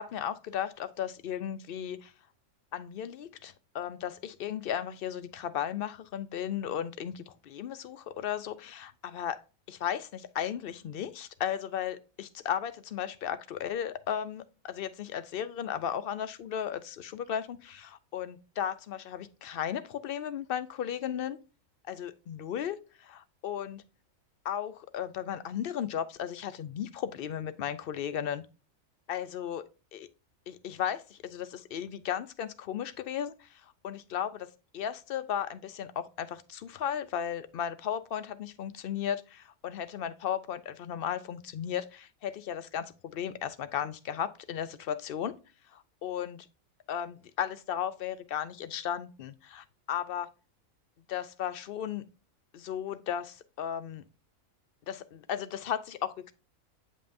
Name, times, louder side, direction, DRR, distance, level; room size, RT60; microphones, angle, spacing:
voice 1, 0.0-2.1 2.7-9.4 9.7-21.4 21.9-23.8 24.4-28.4 29.1-29.6 29.9-30.1 30.5-34.5 34.7-45.3 45.7-46.5 46.9-50.3 51.1-52.0 52.5-54.0 54.9-56.3, left 9 dB, 65° left, 0.5 m, -35 dB
8.5 x 5.5 x 2.6 m
omnidirectional pair, 1.4 m